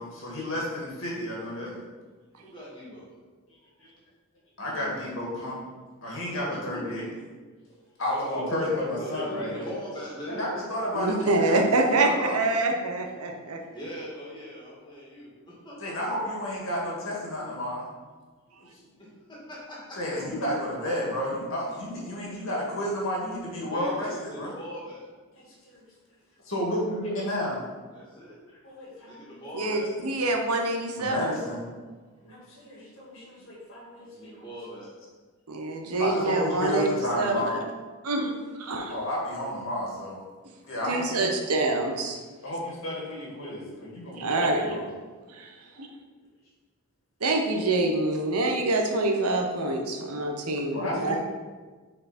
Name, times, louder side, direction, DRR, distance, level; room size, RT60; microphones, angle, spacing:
voice 1, 0.0-1.8 3.8-3.9 4.6-5.6 6.0-7.1 8.0-9.7 10.3-12.4 15.8-17.9 20.0-24.5 25.3-25.8 26.4-27.6 28.6-29.3 31.0-31.7 32.2-34.4 36.0-37.6 38.9-40.2 40.6-41.3 42.4-44.9 50.7-51.2, left 1 dB, 65° left, -4 dB, 2.0 m, -32 dB
voice 2, 2.4-3.1 6.5-6.8 8.1-10.4 13.7-16.0 19.0-20.2 23.5-25.1 25.3-25.5 27.9-28.4 28.9-30.2 34.0-34.9, equal, 20° left, -6 dB, 1.9 m, -40 dB
voice 3, 10.9-13.6 29.5-31.4 35.5-36.9 37.1-37.6 38.0-38.3 38.6-38.9 40.9-42.2 44.2-44.8 45.3-45.9 47.2-51.2, right 2 dB, 90° right, 2 dB, 1.0 m, -26 dB
6.3 x 4.8 x 4.2 m, 1.4 s
head